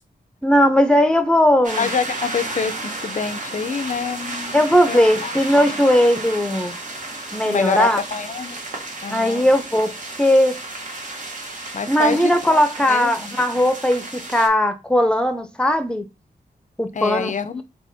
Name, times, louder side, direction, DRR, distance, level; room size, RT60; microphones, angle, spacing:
voice 1, 0.4-1.9 4.5-6.7 7.3-8.0 9.1-9.9 10.2-10.6 11.9-16.0 16.8-17.3, left 1 dB, 5° left, 0.8 m, -18 dB
sound 1, 1.6-14.5, right 2 dB, 50° right, 1.2 m, -33 dB
voice 2, 1.8-5.8 7.4-8.6 9.0-9.5 11.7-13.4 16.9-17.6, left 5 dB, 45° left, 0.5 m, -27 dB
3.4 x 3.0 x 4.1 m
wide cardioid pair, 80°, 17 cm